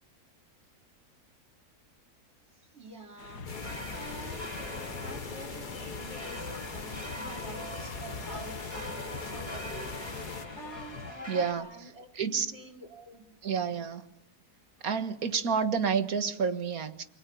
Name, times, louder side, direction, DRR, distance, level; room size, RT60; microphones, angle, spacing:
voice 1, 2.6-10.0 10.5-13.3, right 1 dB, 45° right, 4 dB, 3.4 m, -47 dB
sound 1, 3.2-11.1, left 6 dB, 80° left, 2.0 m, -47 dB
sound 2, 3.5-10.5, left 4 dB, 30° left, 1.5 m, -41 dB
sound 3, 3.5-11.5, left 1 dB, 15° left, 6.3 m, -43 dB
voice 2, 11.3-11.7 12.1-12.5 13.4-14.0 14.8-17.0, right 6 dB, 65° right, 10 dB, 2.0 m, -29 dB
28.5 x 22.0 x 7.1 m, 0.73 s
omnidirectional pair, 1.7 m